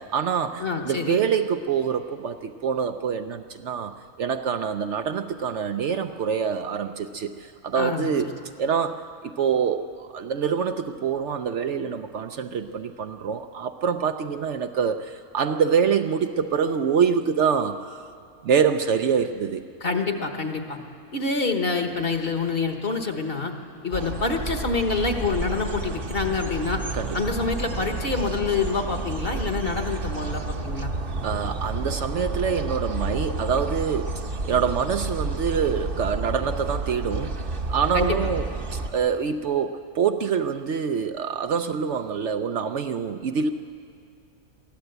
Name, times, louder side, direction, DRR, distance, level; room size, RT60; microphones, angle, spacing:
voice 1, 0.0-3.9 4.2-8.3 8.6-18.0 18.4-19.6 26.9-27.3 31.2-37.4 37.7-38.5 38.7-43.5, right 6 dB, 65° right, 8 dB, 0.9 m, -25 dB
voice 2, 0.6-1.2 7.7-8.1 19.8-20.8 21.1-23.5 23.8-26.8 27.1-30.9 37.9-38.3, left 4 dB, 45° left, 5 dB, 1.5 m, -26 dB
sound 1, 23.9-38.9, right 3 dB, 45° right, 1.1 m, -30 dB
23.0 x 15.0 x 8.0 m, 2.3 s
omnidirectional pair, 1.5 m